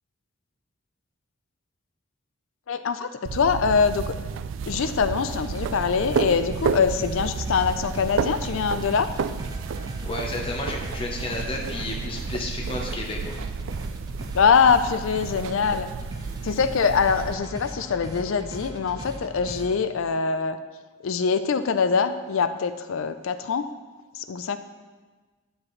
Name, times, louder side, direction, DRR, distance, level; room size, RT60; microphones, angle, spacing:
voice 1, 2.7-4.2 4.7-9.1 14.3-15.9 16.4-20.6 21.0-23.7 24.1-24.6, left 6 dB, 60° left, 11 dB, 0.4 m, -23 dB
sound 1, 3.3-17.3, right 5 dB, 55° right, 0.3 m, -31 dB
sound 2, 5.3-19.8, equal, 20° right, 0.7 m, -39 dB
voice 2, 10.0-13.4, left 2 dB, 25° left, -1 dB, 0.9 m, -32 dB
11.5 x 7.3 x 3.2 m, 1.3 s
head